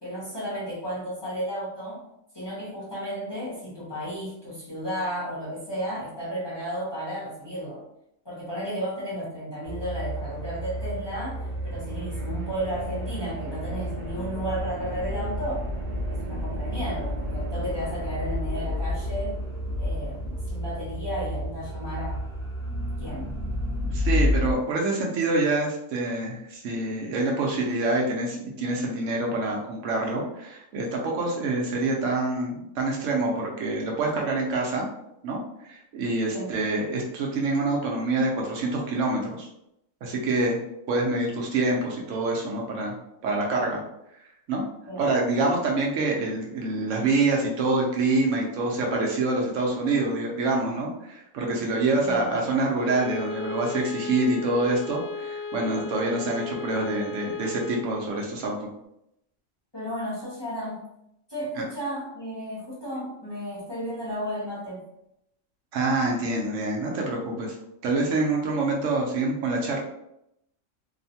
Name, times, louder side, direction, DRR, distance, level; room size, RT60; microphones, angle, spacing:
voice 1, 0.0-2.0 2.3-7.8 8.2-15.7 16.1-19.4 19.8-22.2 23.0-23.3 36.3-36.5 44.9-45.1 52.0-52.4 59.7-60.8 61.3-64.9, equal, 25° left, -9 dB, 0.8 m, -33 dB
sound 1, 9.6-24.5, equal, 40° right, 0.6 m, -30 dB
voice 2, 23.8-34.9 35.2-39.5 40.0-40.6 40.9-42.9 43.2-43.8 44.5-44.6 45.0-58.7 61.6-61.7 65.7-67.6 67.8-69.8, right 2 dB, 70° right, -1 dB, 0.9 m, -26 dB
Bowed string instrument, 52.7-57.9, left 4 dB, 70° left, 0.8 m, -35 dB
3.0 x 2.1 x 2.7 m, 0.81 s
omnidirectional pair, 1.4 m